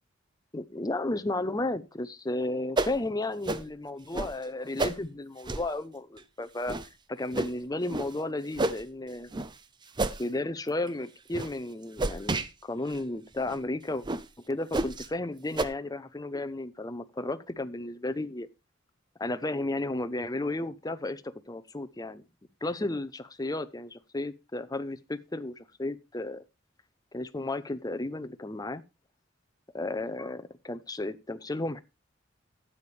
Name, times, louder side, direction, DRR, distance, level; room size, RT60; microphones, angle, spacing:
voice 1, 0.5-6.8 7.1-9.3 10.2-14.0 14.5-18.5 19.2-22.3 22.6-26.4 27.1-28.8 29.7-31.8, left 2 dB, 20° left, 0.7 m, -33 dB
sound 1, 2.8-3.0 3.5-3.7 4.1-4.3 4.8-5.0 5.5-5.7 6.2-6.3 6.7-6.9 7.3-7.5 7.9-8.1 8.6-8.8 9.3-9.5 10.0-10.2 10.7-10.9 11.3-11.5 12.0-12.5 12.9-13.0 13.5-13.6 14.0-14.2 14.7-15.1 15.6-15.7, right 2 dB, 25° right, 0.6 m, -30 dB
12.5 x 8.7 x 3.3 m
head